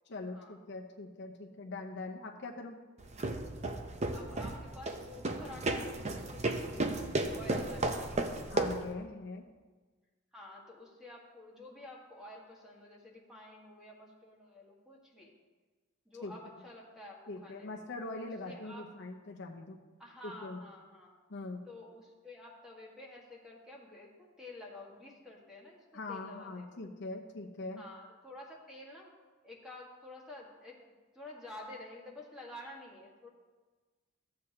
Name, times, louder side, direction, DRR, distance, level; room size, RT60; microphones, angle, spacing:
voice 1, 0.1-2.8 8.5-9.5 16.2-16.3 17.3-19.8 20.2-20.6 21.3-21.6 25.9-27.8, left 3 dB, 60° left, 1 dB, 0.8 m, -42 dB
sound 1, 3.0-8.9, right 2 dB, 35° right, 0.7 m, -34 dB
voice 2, 4.1-8.3 10.3-15.3 16.1-17.8 18.4-18.9 20.0-21.1 21.7-26.9 27.8-29.1 29.4-30.8 31.1-33.3, left 1 dB, 5° right, -3 dB, 1.7 m, -50 dB
14.0 x 7.8 x 2.9 m, 1.3 s
head